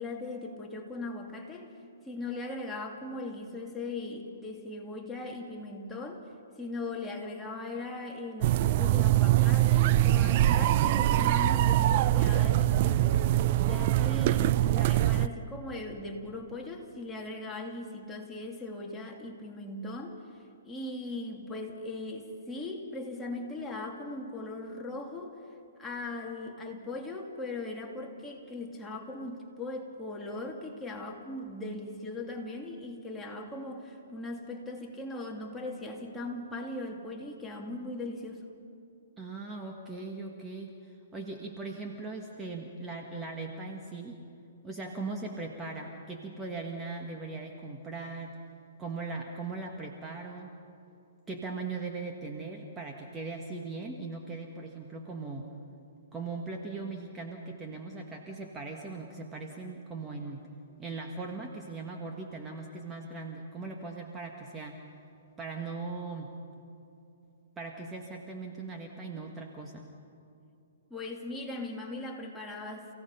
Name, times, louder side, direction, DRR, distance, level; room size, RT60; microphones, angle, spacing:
voice 1, 0.0-1.7 2.1-6.2 6.6-13.2 13.7-20.2 20.6-25.4 25.8-38.4 70.9-72.9, left 2 dB, 10° left, -1 dB, 2.4 m, -39 dB
sound 1, 8.4-15.3, right 14 dB, 45° right, 0.5 m, -23 dB
voice 2, 39.2-44.2 44.6-48.3 48.8-50.5 51.3-55.5 56.1-60.5 60.8-64.8 65.4-66.3 67.6-69.9, right 3 dB, 15° right, 1 dB, 1.6 m, -39 dB
29.5 x 17.0 x 5.7 m, 2.7 s
hypercardioid pair, 140°, 0 cm